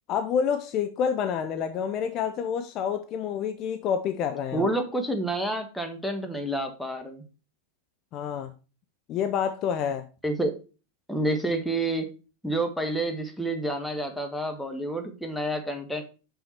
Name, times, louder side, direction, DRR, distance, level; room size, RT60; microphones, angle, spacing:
voice 1, 0.1-4.7 8.1-8.5 9.1-10.1, left 7 dB, 35° left, 0.5 m, -28 dB
voice 2, 4.5-7.2 10.2-10.5 11.1-12.1 12.4-16.0, right 1 dB, ahead, 1.2 m, -29 dB
5.8 x 5.6 x 4.4 m
figure-of-eight pair, 90°, 0 cm